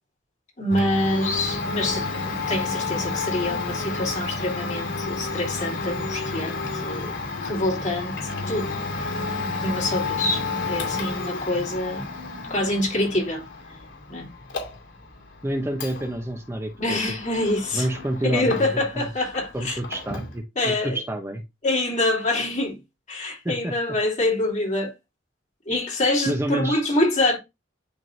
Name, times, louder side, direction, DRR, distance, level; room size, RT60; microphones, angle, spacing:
voice 1, 0.6-2.1 2.5-7.1 7.4-8.1 8.5-9.2 9.6-12.0 12.5-13.4 14.1-14.3 16.8-17.9 18.2-19.8 20.6-21.0 21.6-22.8 23.1-24.9 25.7-27.4, left 1 dB, 40° left, 3.1 m, -25 dB
Domestic sounds home sounds, 0.7-19.0 19.3-20.4, left 3 dB, 85° left, 2.3 m, -31 dB
voice 2, 15.4-17.0 17.7-19.1 19.5-21.4 23.4-23.7 26.3-26.8, right 1 dB, 15° right, 0.8 m, -28 dB
10.5 x 3.7 x 2.6 m
head